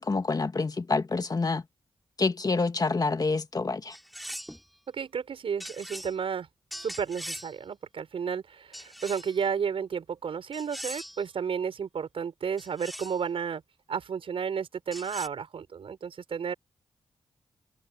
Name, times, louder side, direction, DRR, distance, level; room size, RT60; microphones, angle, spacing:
voice 1, 0.0-1.6 2.2-3.9, left 3 dB, 40° left, 1.9 m, -27 dB
sound 1, 3.9-4.7 5.6-6.1 6.7-7.5 8.7-9.4 10.5-11.2 12.6-13.2 14.9-15.3, equal, ahead, 3.8 m, -41 dB
voice 2, 4.9-6.5 6.8-13.6 13.9-16.5, right 7 dB, 75° right, 5.9 m, -32 dB
cardioid pair, 50°, 9 cm